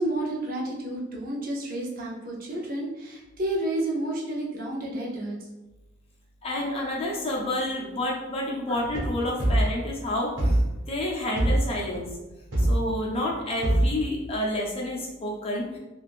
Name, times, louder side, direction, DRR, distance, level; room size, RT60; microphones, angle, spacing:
voice 1, 0.0-5.5, right 1 dB, 45° right, -2 dB, 0.6 m, -30 dB
voice 2, 6.4-10.6 10.9-12.1 12.6-15.8, left 1 dB, 30° left, -2 dB, 0.5 m, -29 dB
sound 1, 8.7-10.0 10.4-10.8 11.4-12.0 12.5-13.0 13.3-13.4 13.6-14.0, right 1 dB, 65° right, 1.2 m, -23 dB
3.5 x 2.4 x 2.4 m, 1.1 s
head